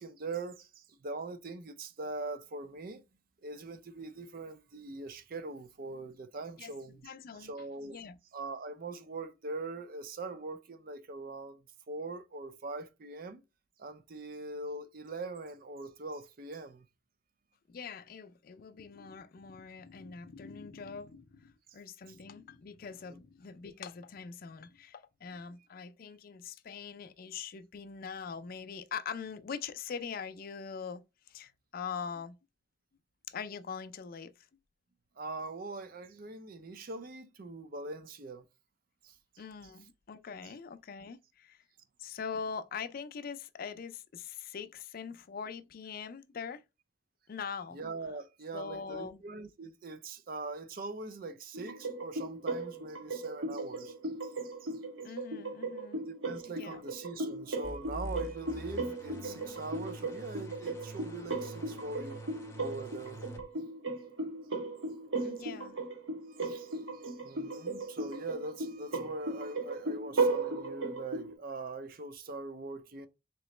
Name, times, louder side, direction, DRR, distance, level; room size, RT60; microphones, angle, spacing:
voice 1, 0.0-3.0 3.4-7.1 7.4-8.0 8.3-13.4 13.8-16.9 23.1-23.2 35.2-38.5 39.0-39.2 47.7-54.7 55.9-62.2 62.6-63.2 65.2-65.3 66.3-73.1, right 3 dB, 50° right, 0.5 m, -42 dB
voice 2, 7.0-7.5 7.8-8.2 17.7-31.0 31.3-32.3 33.3-34.3 39.4-41.6 42.0-46.6 47.3-47.8 48.5-49.2 55.0-56.0 56.5-56.8 65.2-65.8, left 6 dB, 50° left, 0.4 m, -42 dB
sound 1, 51.5-71.3, right 3 dB, 80° right, 1.1 m, -36 dB
sound 2, 57.6-63.4, equal, 15° left, 0.7 m, -45 dB
3.9 x 3.0 x 3.1 m
head